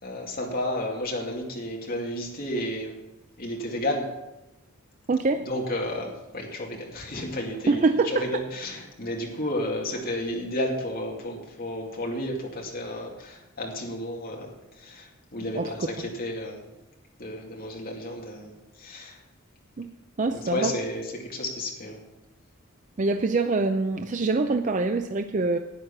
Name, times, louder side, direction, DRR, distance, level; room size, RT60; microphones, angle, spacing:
voice 1, 0.0-3.0 3.4-4.1 5.5-16.6 17.2-19.2 20.3-22.0, left 1 dB, 45° left, -1 dB, 2.4 m, -32 dB
voice 2, 5.1-5.5 7.7-8.3 15.5-15.7 19.8-19.9 20.2-20.7 23.0-25.6, right 3 dB, 35° right, 7 dB, 0.5 m, -24 dB
11.0 x 9.3 x 6.0 m, 0.97 s
head